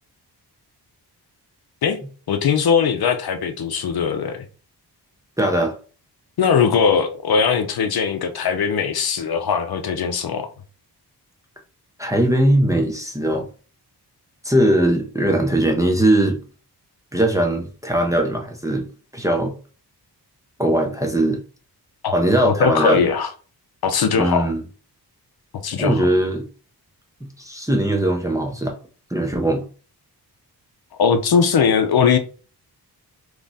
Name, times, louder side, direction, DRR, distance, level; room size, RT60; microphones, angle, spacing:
voice 1, 1.8-4.4 6.4-10.5 22.0-22.2 22.4-23.3 23.8-24.5 25.6-26.0 31.0-32.2, left 6 dB, 65° left, 0.7 m, -20 dB
voice 2, 5.4-5.8 12.0-13.5 14.4-16.4 17.1-18.9 19.1-19.5 20.6-21.4 22.1-23.1 24.2-24.6 25.8-26.4 27.4-28.8 29.1-29.6, right 1 dB, 10° right, 0.6 m, -20 dB
3.6 x 3.1 x 4.0 m
wide cardioid pair, 175°, 41 cm